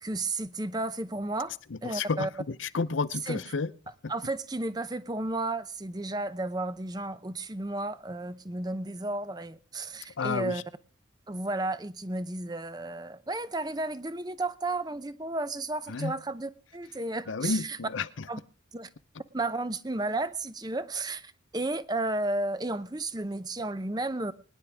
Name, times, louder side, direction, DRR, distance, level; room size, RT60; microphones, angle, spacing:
voice 1, 0.0-1.5 1.8-2.3 3.3-3.4 4.1-10.6 11.3-17.8 18.3-18.4 18.7-18.9 19.3-24.3, right 2 dB, 20° right, 0.7 m, -33 dB
voice 2, 1.7-3.7 10.2-10.6 15.9-16.1 17.3-18.1, left 4 dB, 85° left, 0.7 m, -31 dB
22.5 x 10.5 x 3.5 m
head